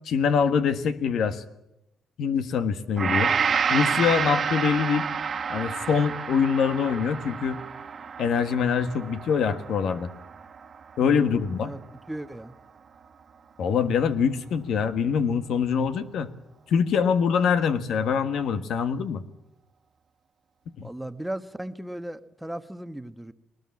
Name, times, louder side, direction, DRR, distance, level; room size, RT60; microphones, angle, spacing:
voice 1, 0.0-1.4 2.2-3.3 3.7-5.1 5.5-7.6 8.2-10.1 11.0-11.7 13.6-16.3 16.7-19.2 20.8-20.9, left 6 dB, 70° left, 1.5 m, -24 dB
Gong, 3.0-11.3 11.7-11.9, right 6 dB, 50° right, 1.5 m, -29 dB
voice 2, 11.0-12.5 20.8-23.3, right 1 dB, 5° right, 1.1 m, -37 dB
20.5 x 19.5 x 8.6 m
cardioid pair, 90°, 0 cm